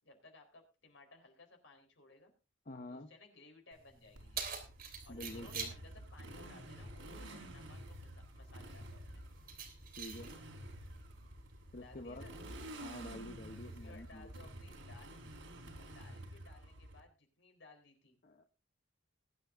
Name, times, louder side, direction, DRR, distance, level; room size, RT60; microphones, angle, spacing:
voice 1, 0.0-2.3 2.9-4.5 5.0-9.2 11.8-12.3 13.6-15.2 15.8-18.2, left 3 dB, 70° left, 4 dB, 4.1 m, -60 dB
voice 2, 2.7-3.1 5.1-5.7 10.0-10.3 11.7-12.2 12.8-14.3 18.2-18.4, left 1 dB, 45° left, 4 dB, 1.0 m, -48 dB
Keys jangling, 3.7-14.7, right 6 dB, 50° right, 3.1 m, -50 dB
Motorcycle, 4.2-17.0, right 1 dB, 90° right, 3.3 m, -50 dB
21.0 x 9.8 x 2.6 m, 0.32 s
head